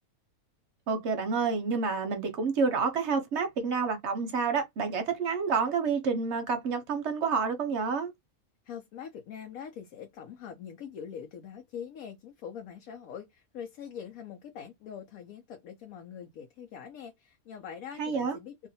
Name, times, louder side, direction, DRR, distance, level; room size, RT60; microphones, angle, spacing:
voice 1, 0.9-8.1 18.0-18.4, right 5 dB, 60° right, 0.8 m, -29 dB
voice 2, 8.6-18.7, left 8 dB, 80° left, 1.0 m, -43 dB
2.7 x 2.4 x 2.6 m
omnidirectional pair, 1.5 m